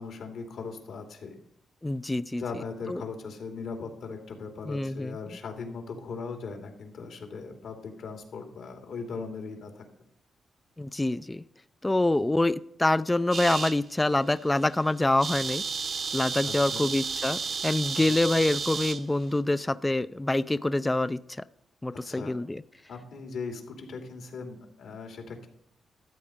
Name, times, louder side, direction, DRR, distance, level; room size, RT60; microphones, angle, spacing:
voice 1, 0.0-1.4 2.3-9.8 16.3-16.9 17.9-18.2 22.0-22.4 22.9-25.5, left 4 dB, 75° left, 4 dB, 2.7 m, -39 dB
voice 2, 1.8-2.4 2.9-3.0 4.7-5.2 10.8-11.4 11.8-15.6 16.1-21.2 21.8-22.6, left 2 dB, 15° left, 15 dB, 0.4 m, -26 dB
sound 1, 13.3-13.8 14.3-14.5 14.8-14.9 15.0-19.0, right 5 dB, 55° right, 1.0 m, -32 dB
13.5 x 8.3 x 5.1 m, 0.73 s
cardioid pair, 85°, 0 cm